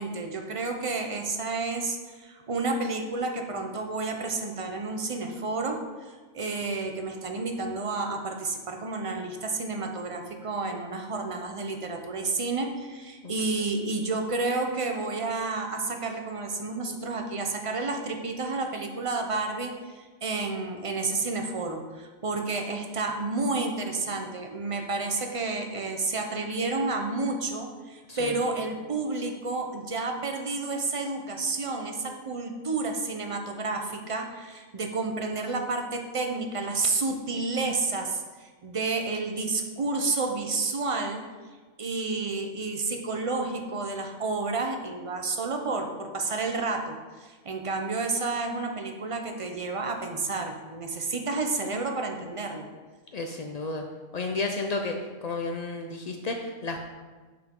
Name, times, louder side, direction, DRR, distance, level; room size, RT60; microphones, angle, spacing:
voice 1, 0.0-41.2 41.8-52.7, right 3 dB, 35° right, 3 dB, 0.5 m, -30 dB
voice 2, 53.1-53.8 54.1-56.8, left 3 dB, 90° left, 3 dB, 0.3 m, -32 dB
7.6 x 5.8 x 3.7 m, 1.4 s
omnidirectional pair, 1.4 m